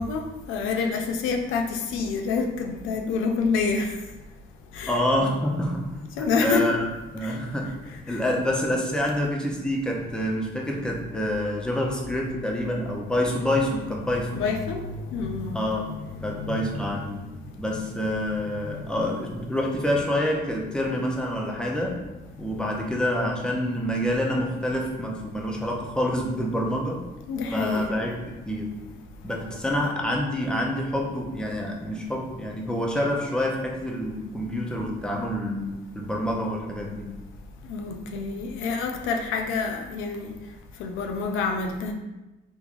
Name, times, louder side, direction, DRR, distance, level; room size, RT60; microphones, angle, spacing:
voice 1, 0.0-3.9 4.7-5.0 6.2-6.7 7.2-7.4 8.1-8.2 14.0-15.6 16.2-17.0 18.6-18.7 27.3-27.9 37.7-40.3 40.8-41.9, left 4 dB, 90° left, 4 dB, 0.4 m, -28 dB
voice 2, 4.9-5.9 6.2-6.9 7.1-7.7 8.1-14.4 15.5-15.9 16.2-17.3 17.6-22.1 22.4-27.0 27.5-28.2 28.5-28.8 29.2-37.2, equal, 5° left, -1 dB, 0.6 m, -27 dB
3.6 x 3.0 x 2.5 m, 1.1 s
cardioid pair, 90°, 20 cm